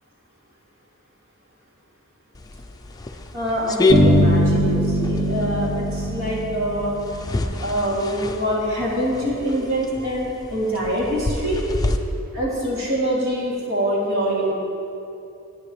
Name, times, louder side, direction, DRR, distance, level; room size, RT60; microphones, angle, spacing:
sound 1, 2.3-12.0, left 2 dB, 20° left, 0.5 m, -28 dB
voice 1, 3.3-6.9 7.6-11.6 12.3-14.5, equal, 65° right, -6 dB, 2.8 m, -24 dB
sound 2, 3.9-7.6, equal, 35° right, 1.5 m, -21 dB
14.0 x 9.3 x 3.3 m, 2.7 s
head